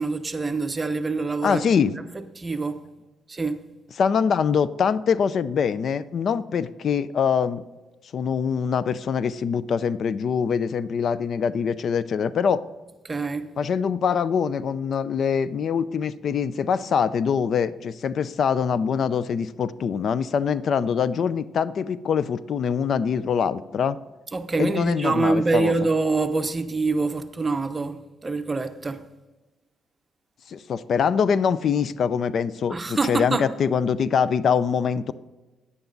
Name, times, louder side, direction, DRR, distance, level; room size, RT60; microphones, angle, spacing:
voice 1, 0.0-1.7 2.1-2.8 3.3-3.6 13.0-13.5 24.3-29.0 32.7-33.5, right 3 dB, 25° right, 0.8 m, -25 dB
voice 2, 1.4-1.9 4.0-7.6 8.1-12.6 13.6-24.0 24.6-25.7 30.5-35.1, left 6 dB, 60° left, 0.4 m, -24 dB
9.8 x 9.1 x 3.9 m
cardioid pair, 90°, 0 cm